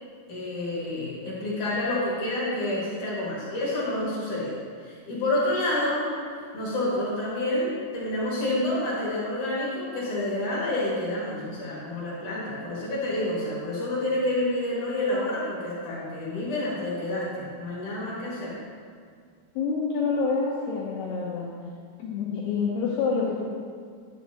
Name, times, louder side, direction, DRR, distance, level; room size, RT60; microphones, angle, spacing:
voice 1, 0.3-6.1 6.5-18.6, left 1 dB, 55° left, -8 dB, 2.7 m, -28 dB
voice 2, 19.6-21.5 22.0-23.4, left 5 dB, 85° left, -4 dB, 2.3 m, -27 dB
10.5 x 7.3 x 2.8 m, 2.1 s
omnidirectional pair, 5.5 m